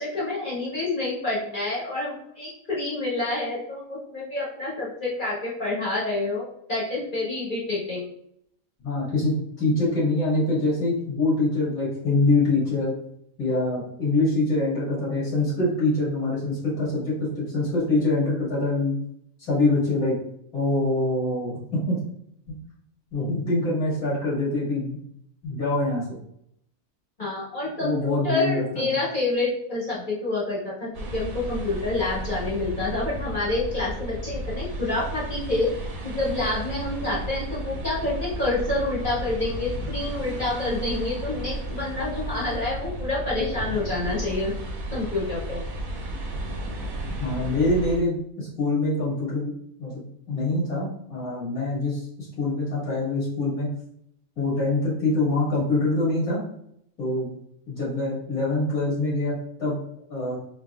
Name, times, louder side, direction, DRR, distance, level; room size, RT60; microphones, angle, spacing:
voice 1, 0.0-8.1 27.2-35.7 36.0-44.5 44.9-45.6, left 2 dB, 40° left, -8 dB, 1.3 m, -28 dB
voice 2, 8.8-12.9 13.4-19.0 19.4-20.1 20.5-22.0 23.1-25.0 25.4-26.2 27.8-29.0 47.2-49.5 49.8-50.0 50.3-52.1 52.4-53.7 54.4-56.4 57.0-57.3 57.7-59.8 60.1-60.4, left 2 dB, 80° left, -7 dB, 2.2 m, -24 dB
sound 1, 30.9-48.0, right 1 dB, 80° right, 1.3 m, -33 dB
4.1 x 2.8 x 2.3 m, 0.72 s
omnidirectional pair, 1.5 m